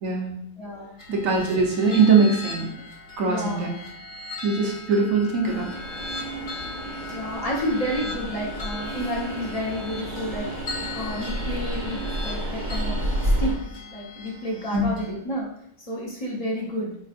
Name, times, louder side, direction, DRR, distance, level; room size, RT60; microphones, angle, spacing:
voice 1, 0.0-0.4 1.1-2.7 3.2-3.7 4.4-5.7 14.7-15.0, right 4 dB, 75° right, 0 dB, 1.3 m, -21 dB
voice 2, 0.6-1.0 3.3-3.7 7.0-13.6 13.9-15.5 15.8-16.9, equal, 30° left, -3 dB, 1.0 m, -31 dB
sound 1, 1.0-15.1, left 4 dB, 60° left, 1.5 m, -39 dB
Train, 5.4-13.6, right 1 dB, 40° right, 1.1 m, -30 dB
4.8 x 3.5 x 2.5 m, 0.72 s
omnidirectional pair, 1.4 m